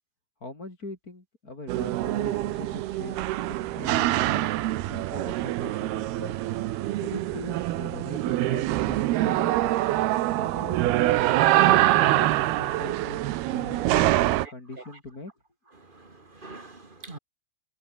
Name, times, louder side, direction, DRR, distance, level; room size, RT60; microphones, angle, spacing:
voice 1, 0.4-4.5 4.9-6.4 7.0-9.8 10.4-11.1 11.6-15.3, left 2 dB, 20° left, 5.0 m, -41 dB
sound 1, 1.7-14.5, right 15 dB, 75° right, 2.9 m, -25 dB
voice 2, 14.4-15.0 15.7-17.2, right 3 dB, 20° right, 1.3 m, -43 dB
omnidirectional pair, 4.8 m